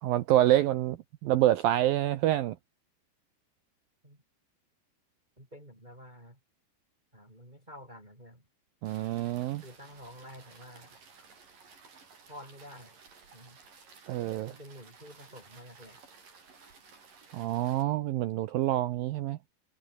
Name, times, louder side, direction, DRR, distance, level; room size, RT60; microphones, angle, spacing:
voice 1, 0.0-2.6 8.8-9.6 14.1-14.5 17.3-19.4, right 14 dB, 80° right, 2.1 m, -27 dB
voice 2, 5.4-6.4 7.1-8.5 9.6-11.0 12.3-13.0 13.3-13.6 14.5-16.0, equal, 10° right, 5.9 m, -50 dB
sound 1, 8.8-17.8, right 5 dB, 50° right, 7.0 m, -56 dB
omnidirectional pair, 5.2 m